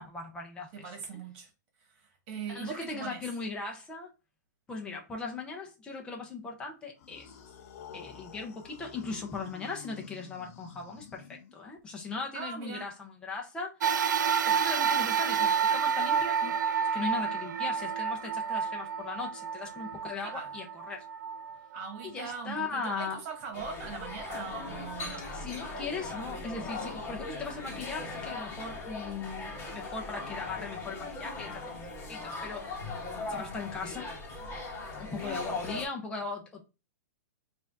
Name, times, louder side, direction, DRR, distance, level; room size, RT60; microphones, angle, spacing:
voice 1, 0.0-0.9 2.5-4.1 4.7-7.3 7.9-13.8 14.5-16.6 16.9-21.0 22.0-23.2 25.3-32.7 33.3-34.1 35.0-36.6, left 4 dB, 10° left, 1.0 m, -38 dB
voice 2, 0.7-1.5 2.0-3.2 12.3-12.9 20.2-20.4 21.7-25.2 35.2-35.4, right 6 dB, 35° right, 1.7 m, -40 dB
sound 1, 7.0-11.8, left 8 dB, 50° left, 0.7 m, -49 dB
sound 2, 13.8-22.4 23.0-23.1 24.2-24.3, right 7 dB, 80° right, 0.5 m, -29 dB
sound 3, 23.5-35.8, left 3 dB, 25° left, 1.7 m, -39 dB
4.8 x 2.8 x 3.8 m
hypercardioid pair, 155°, 10 cm